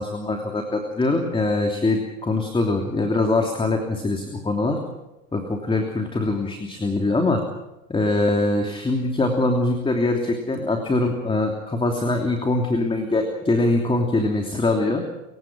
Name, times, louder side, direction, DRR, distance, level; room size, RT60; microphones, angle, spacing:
voice 1, 0.0-4.8 5.3-7.4 7.9-15.0, left 2 dB, 15° left, 3 dB, 3.0 m, -23 dB
27.0 x 16.0 x 6.2 m, 0.97 s
hypercardioid pair, 100°, 40 cm